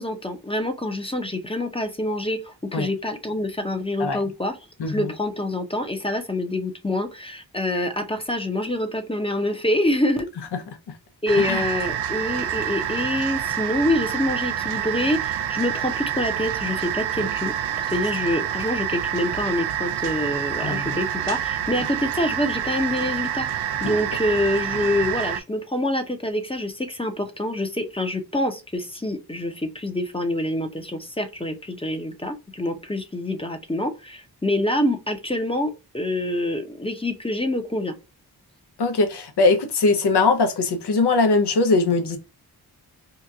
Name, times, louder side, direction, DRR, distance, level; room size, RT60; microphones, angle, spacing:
voice 1, 0.0-4.6 4.9-10.3 11.2-17.5 17.9-23.5 23.8-37.9, left 1 dB, 15° left, 0.6 m, -26 dB
voice 2, 4.8-5.1 10.5-10.6 11.4-11.6 20.6-21.0 38.8-42.2, left 3 dB, 80° left, 0.8 m, -21 dB
sound 1, 11.3-25.4, right 10 dB, 90° right, 0.5 m, -27 dB
2.9 x 2.4 x 3.4 m
wide cardioid pair, 80°, 39 cm